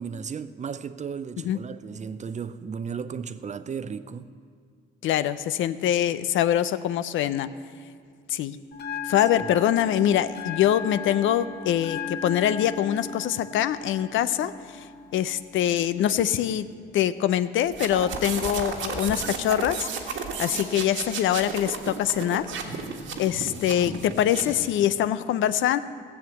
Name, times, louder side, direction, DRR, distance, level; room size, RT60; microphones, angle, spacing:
voice 1, 0.0-4.3 9.4-9.5, right 6 dB, 35° right, 0.6 m, -35 dB
voice 2, 5.0-7.5 8.3-8.6 9.0-14.9 15.1-16.7 16.9-22.7 23.2-25.8, left 11 dB, 80° left, 0.5 m, -24 dB
Bell, 8.7-16.7, left 5 dB, 55° left, 0.9 m, -38 dB
sound 1, 17.7-24.7, right 5 dB, 75° right, 1.6 m, -33 dB
16.0 x 7.2 x 7.9 m
cardioid pair, 90°, 20 cm